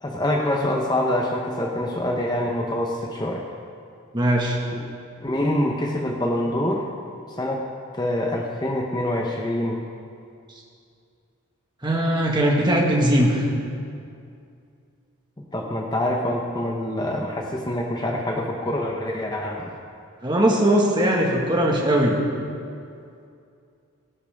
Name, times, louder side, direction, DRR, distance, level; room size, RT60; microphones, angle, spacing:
voice 1, 0.0-3.4 4.7-4.8 5.2-6.9 7.4-7.6 7.9-9.9 15.4-19.7, left 1 dB, 20° left, 0 dB, 0.9 m, -25 dB
voice 2, 4.1-4.6 11.8-13.5 20.2-22.2, right 1 dB, 20° right, -1 dB, 1.6 m, -20 dB
18.0 x 16.0 x 3.6 m, 2.4 s
head